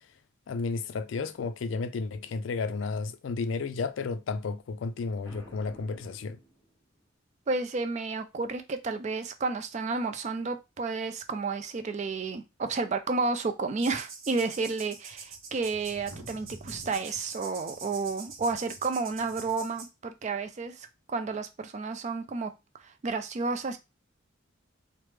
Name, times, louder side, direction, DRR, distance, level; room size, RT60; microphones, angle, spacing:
voice 1, 0.5-6.4, left 4 dB, 75° left, 0.4 m, -32 dB
Boom, 5.2-7.1, equal, 20° left, 1.0 m, -52 dB
voice 2, 7.5-22.5 22.8-23.8, right 4 dB, 35° right, 0.3 m, -31 dB
sound 1, 13.8-19.9, right 4 dB, 90° right, 0.7 m, -45 dB
3.2 x 2.0 x 3.1 m
head